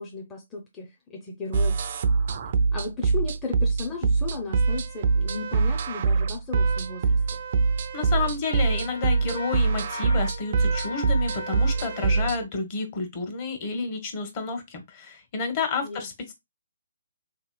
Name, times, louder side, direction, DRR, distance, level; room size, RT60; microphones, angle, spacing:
voice 1, 0.0-1.8 2.5-7.2 15.8-16.1, left 4 dB, 15° left, 0.5 m, -35 dB
sound 1, 1.5-12.4, right 4 dB, 50° right, 0.3 m, -24 dB
voice 2, 7.9-16.3, left 4 dB, 35° left, 0.9 m, -30 dB
Wind instrument woodwind instrument, 8.4-12.4, left 5 dB, 80° left, 0.5 m, -40 dB
2.9 x 2.8 x 2.2 m
figure-of-eight pair, 140°, 0 cm